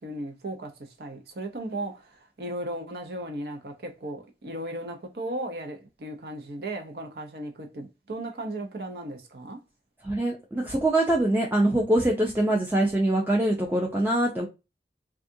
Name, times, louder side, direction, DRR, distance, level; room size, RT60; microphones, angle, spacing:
voice 1, 0.0-9.6, right 1 dB, 60° right, 0.6 m, -36 dB
voice 2, 10.0-14.5, right 1 dB, 10° right, 0.4 m, -24 dB
3.5 x 2.4 x 2.6 m
head